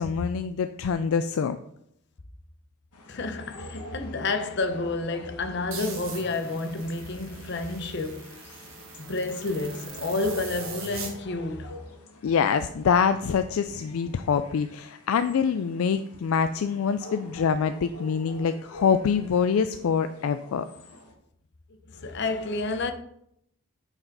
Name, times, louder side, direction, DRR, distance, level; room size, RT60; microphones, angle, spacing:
voice 1, 0.0-1.6 12.2-20.6, left 6 dB, 70° left, 0.3 m, -25 dB
sound 1, 2.9-21.1, left 1 dB, 90° left, 1.3 m, -47 dB
voice 2, 3.1-8.7 9.0-11.7 21.9-22.9, left 3 dB, 50° left, 0.7 m, -30 dB
sound 2, 5.7-11.1, right 5 dB, 65° right, 1.4 m, -42 dB
8.6 x 5.0 x 3.9 m
head